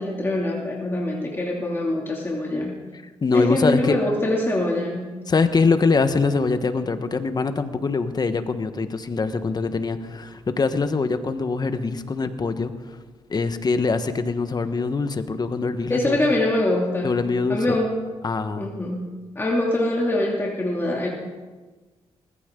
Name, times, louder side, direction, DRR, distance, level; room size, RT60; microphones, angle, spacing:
voice 1, 0.0-2.8 3.3-5.1 15.9-17.2 17.5-18.0 18.6-21.1, left 1 dB, 20° left, -3 dB, 2.7 m, -24 dB
voice 2, 3.2-4.0 5.3-13.0 13.3-16.2 17.0-17.8 18.2-18.7, left 4 dB, 35° left, 9 dB, 1.3 m, -23 dB
20.0 x 15.0 x 3.8 m, 1.3 s
cardioid pair, 80°, 11 cm